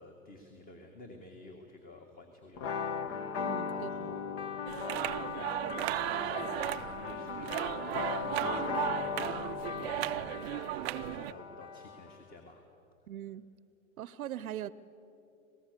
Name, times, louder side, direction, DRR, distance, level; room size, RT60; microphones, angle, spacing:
voice 1, 0.0-4.4 4.8-5.5 6.0-12.6, left 2 dB, 20° left, 4 dB, 1.8 m, -51 dB
sound 1, 2.6-12.2, left 6 dB, 50° left, 1.5 m, -38 dB
voice 2, 3.4-4.1 13.1-13.5 14.0-14.7, right 11 dB, 85° right, 18 dB, 0.7 m, -41 dB
sound 2, 4.7-11.3, right 17 dB, 50° right, 0.5 m, -35 dB
26.0 x 18.5 x 6.8 m, 3.0 s
hypercardioid pair, 120°, 42 cm